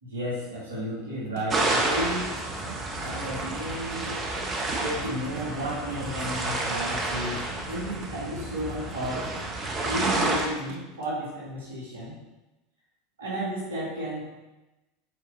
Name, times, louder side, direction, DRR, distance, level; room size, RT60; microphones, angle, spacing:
voice 1, 0.0-2.3 3.0-4.2 4.8-9.3 9.8-12.1 13.2-14.3, equal, 75° right, -6 dB, 2.0 m, -33 dB
sound 1, 1.3-11.1, right 7 dB, 50° right, 0.6 m, -46 dB
sound 2, 1.5-10.5, right 2 dB, 25° right, 1.3 m, -30 dB
7.3 x 4.7 x 4.2 m, 1.0 s
figure-of-eight pair, 80°, 0 cm